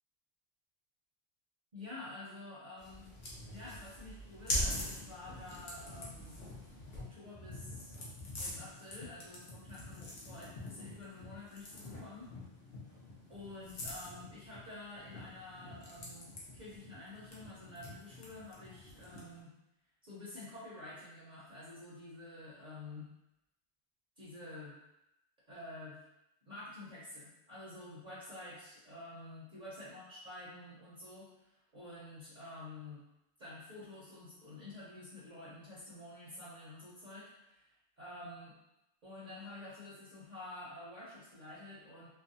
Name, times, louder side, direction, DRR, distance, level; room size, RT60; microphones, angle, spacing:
voice 1, 1.7-3.1 3.4-6.4 6.9-8.0 8.4-12.3 13.3-19.5 20.0-23.1 24.2-24.8 25.5-26.0 26.4-33.0 33.4-38.6 39.0-42.1, left 2 dB, 50° right, -9 dB, 0.7 m, -49 dB
sound 1, 2.8-19.4, left 1 dB, 65° left, 0.9 m, -44 dB
2.5 x 2.1 x 2.6 m, 0.91 s
omnidirectional pair, 1.1 m